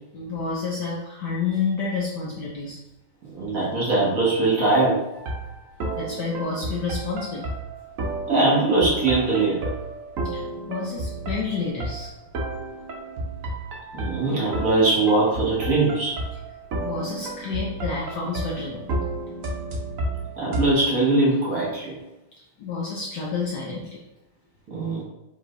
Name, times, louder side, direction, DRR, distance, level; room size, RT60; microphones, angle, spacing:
voice 1, 0.1-2.8 5.9-7.5 10.2-10.4 10.7-12.1 16.8-18.8 22.6-24.0, left 4 dB, 65° left, -4 dB, 1.1 m, -29 dB
voice 2, 3.3-5.1 8.3-9.7 13.9-16.2 20.4-22.0 24.7-25.0, right 2 dB, 45° right, -5 dB, 1.6 m, -21 dB
sound 1, 5.1-20.7, right 2 dB, 65° right, 0.8 m, -32 dB
4.8 x 3.8 x 2.6 m, 0.97 s
omnidirectional pair, 2.4 m